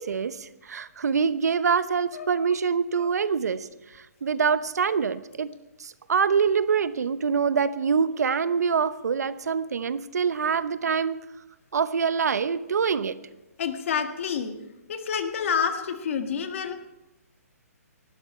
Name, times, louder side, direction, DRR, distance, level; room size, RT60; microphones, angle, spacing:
voice 1, 0.0-3.7 4.2-5.5 5.8-11.2 11.7-13.2, right 6 dB, 80° right, 15 dB, 0.9 m, -25 dB
voice 2, 13.6-14.6 14.9-16.7, left 7 dB, 50° left, 7 dB, 1.7 m, -28 dB
18.5 x 13.0 x 4.3 m, 0.99 s
hypercardioid pair, 155°, 9 cm